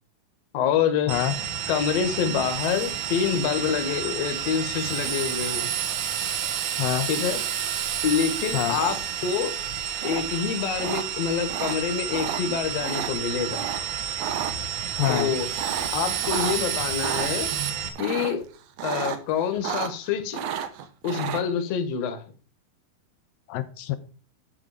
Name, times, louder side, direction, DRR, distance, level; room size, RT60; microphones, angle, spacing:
voice 1, 0.5-1.1 1.7-5.7 7.1-7.4 8.0-9.5 10.0-13.7 15.1-15.5 15.9-17.5 18.0-18.4 18.8-20.4 21.0-22.2, left 7 dB, 60° left, 8 dB, 2.0 m, -26 dB
sound 1, 1.1-17.9, right 8 dB, 55° right, 2.4 m, -32 dB
Drill, 2.4-11.3 14.7-17.7, right 9 dB, 90° right, 3.0 m, -34 dB
voice 2, 6.8-7.1 8.5-8.8 15.0-15.3 23.5-24.0, left 13 dB, 85° left, 9 dB, 2.3 m, -26 dB
sound 2, 8.7-9.2 10.0-10.2 10.8-11.0 11.5-11.8 12.1-12.4 12.8-13.1 13.5-13.8 14.1-14.5 15.0-16.6 17.0-17.3 17.9-18.4 18.8-19.2 19.5-20.1 20.3-21.4, right 8 dB, 70° right, 1.6 m, -31 dB
11.5 x 6.0 x 4.8 m, 0.37 s
omnidirectional pair, 4.1 m